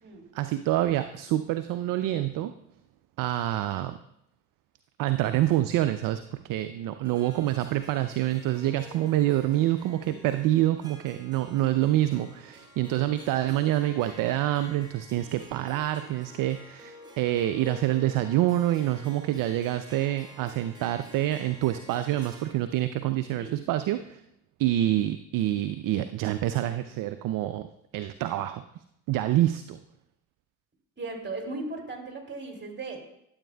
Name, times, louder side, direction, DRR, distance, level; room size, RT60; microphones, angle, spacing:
voice 1, 0.3-2.5 3.2-4.0 5.0-24.2 24.6-28.6 29.1-29.8, right 14 dB, 55° right, 11 dB, 0.5 m, -27 dB
Harp, 7.0-22.5, left 1 dB, 10° right, 1.8 m, -50 dB
voice 2, 31.0-33.0, right 3 dB, 25° right, 2 dB, 2.5 m, -37 dB
12.0 x 8.0 x 2.2 m, 0.77 s
hypercardioid pair, 50°, 40 cm